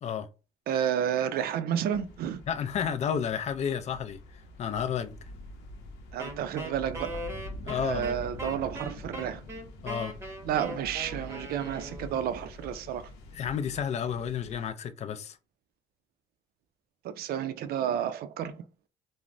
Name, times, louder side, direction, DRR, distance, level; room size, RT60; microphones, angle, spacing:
voice 1, 0.7-2.4 6.1-7.2 7.8-9.4 10.4-13.1 17.0-18.6, right 9 dB, 65° right, 0.4 m, -31 dB
sound 1, 1.9-14.7, left 1 dB, 80° left, 0.7 m, -45 dB
voice 2, 2.5-4.2 4.6-5.1 7.6-8.1 9.8-10.1 13.3-15.4, left 8 dB, 40° left, 0.4 m, -31 dB
Wind instrument woodwind instrument, 6.2-12.3, equal, 15° right, 0.8 m, -40 dB
3.2 x 2.0 x 2.5 m
cardioid pair, 110°, 17 cm